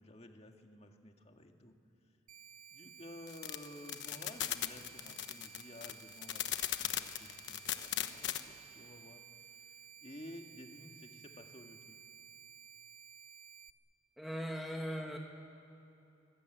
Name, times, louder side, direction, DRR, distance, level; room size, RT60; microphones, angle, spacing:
voice 1, 0.0-1.8 2.7-12.0, left 1 dB, 30° left, 4 dB, 1.9 m, -53 dB
sound 1, 2.3-13.7, right 8 dB, 40° right, 0.9 m, -55 dB
sound 2, 3.3-8.4, left 11 dB, 65° left, 1.1 m, -37 dB
voice 2, 14.2-15.2, equal, ahead, 1 dB, 1.5 m, -39 dB
25.0 x 20.0 x 9.2 m, 2.9 s
head